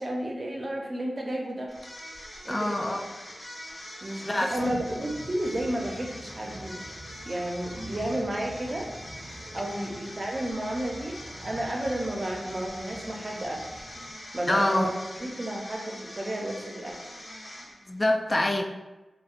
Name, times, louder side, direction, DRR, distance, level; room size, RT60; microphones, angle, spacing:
voice 1, 0.0-1.7 2.4-3.0 4.0-6.8 7.3-8.9 9.5-13.6 14.3-17.0, right 1 dB, 45° right, 0 dB, 0.5 m, -32 dB
sound 1, 1.7-18.0, left 1 dB, 65° left, 0.9 m, -43 dB
voice 2, 2.5-3.1 4.2-4.6 9.7-9.9 14.5-14.9 17.9-18.6, left 1 dB, 35° left, 4 dB, 0.3 m, -26 dB
sound 2, 4.5-14.1, right 1 dB, 5° right, 0.6 m, -45 dB
2.6 x 2.1 x 2.5 m, 1.1 s
cardioid pair, 45°, 0 cm